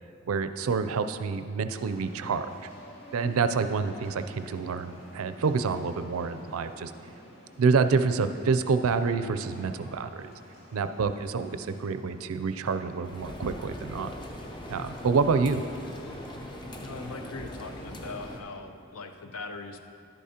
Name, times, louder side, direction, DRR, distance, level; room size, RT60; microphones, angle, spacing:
voice 1, 0.3-2.7 3.1-6.9 7.6-10.3 10.7-14.1 14.7-15.6, right 5 dB, 80° right, 10 dB, 0.4 m, -27 dB
sound 1, 1.7-18.5, equal, 65° left, 2.0 m, -51 dB
sound 2, 13.0-18.4, left 1 dB, 20° left, 0.5 m, -41 dB
voice 2, 16.8-19.8, left 3 dB, 85° left, 7 dB, 0.6 m, -40 dB
11.0 x 8.4 x 2.8 m, 2.5 s
head